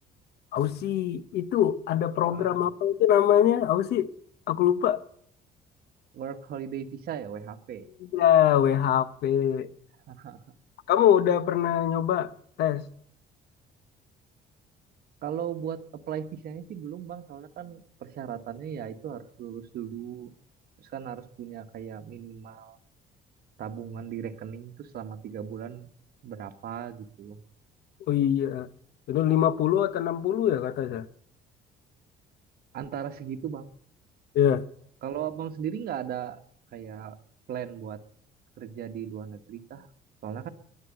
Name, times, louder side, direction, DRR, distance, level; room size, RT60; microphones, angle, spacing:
voice 1, 0.5-4.1 4.5-5.0 8.1-9.7 10.9-12.3 12.6-12.8 28.1-28.7 29.1-31.1 34.3-34.6, left 10 dB, 70° left, 0.9 m, -23 dB
voice 2, 2.3-2.7 6.1-7.9 10.1-10.4 15.2-20.3 20.8-22.8 23.6-25.9 26.2-27.4 32.7-33.7 35.0-36.4 36.7-37.2 37.5-38.0 38.6-39.9 40.2-40.5, right 9 dB, 65° right, 1.4 m, -37 dB
11.0 x 11.0 x 8.8 m
cardioid pair, 110°, 17 cm